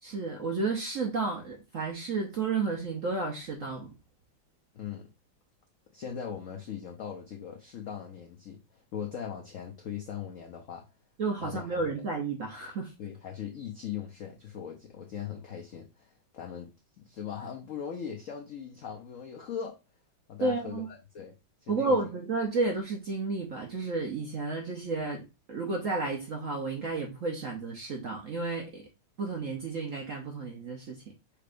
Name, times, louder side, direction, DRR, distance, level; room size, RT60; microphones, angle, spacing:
voice 1, 0.0-3.9 11.2-12.9 20.4-20.9 21.7-25.2 25.5-28.8 29.2-31.0, right 3 dB, 60° right, 0.8 m, -32 dB
voice 2, 4.7-5.1 5.9-10.8 11.4-11.8 13.0-16.7 17.0-19.8 20.3-21.3 21.6-22.0, left 8 dB, 75° left, 0.7 m, -40 dB
5.6 x 3.3 x 2.5 m
omnidirectional pair, 2.2 m